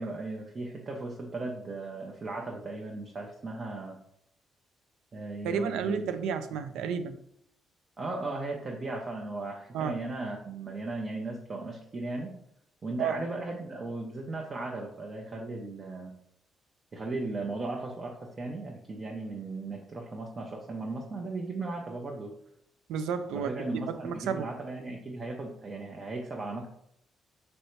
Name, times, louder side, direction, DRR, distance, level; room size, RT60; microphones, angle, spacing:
voice 1, 0.0-4.0 5.1-6.1 8.0-12.3 12.8-16.1 16.9-22.3 23.3-26.7, right 2 dB, 40° right, 0 dB, 0.7 m, -36 dB
voice 2, 5.4-7.2 9.7-10.0 13.0-13.2 22.9-23.5 23.9-24.5, right 6 dB, 90° right, 10 dB, 0.4 m, -31 dB
3.3 x 2.6 x 4.4 m, 0.73 s
cardioid pair, 90°, 0 cm